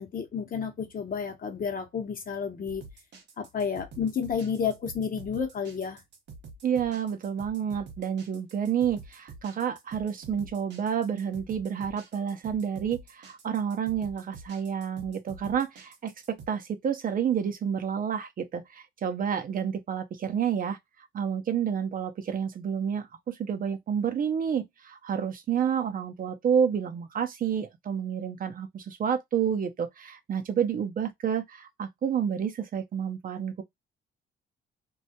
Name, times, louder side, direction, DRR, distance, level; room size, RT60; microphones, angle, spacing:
voice 1, 0.0-2.8 3.4-6.0, left 6 dB, 45° left, 0.8 m, -31 dB
sound 1, 2.7-16.5, right 4 dB, 60° right, 0.8 m, -47 dB
voice 2, 6.6-20.8 21.1-33.6, right 8 dB, 45° right, 0.5 m, -29 dB
2.2 x 2.0 x 2.7 m
cardioid pair, 90°, 20 cm